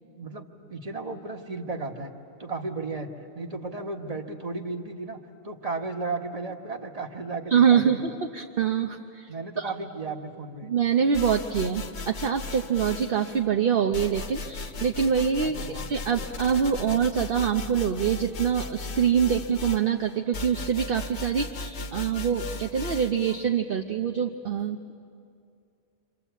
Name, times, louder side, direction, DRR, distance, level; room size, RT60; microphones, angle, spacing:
voice 1, 0.1-2.1 2.4-3.1 3.3-5.2 5.4-8.0 9.3-10.7 15.5-15.9, right 3 dB, 35° right, 3 dB, 1.7 m, -34 dB
voice 2, 7.5-9.3 9.6-9.7 10.6-24.9, right 7 dB, 60° right, 4 dB, 1.0 m, -25 dB
sound 1, 11.1-13.4 13.9-23.4, left 3 dB, 85° left, 1.3 m, -37 dB
28.0 x 25.5 x 8.2 m, 2.4 s
omnidirectional pair, 1.1 m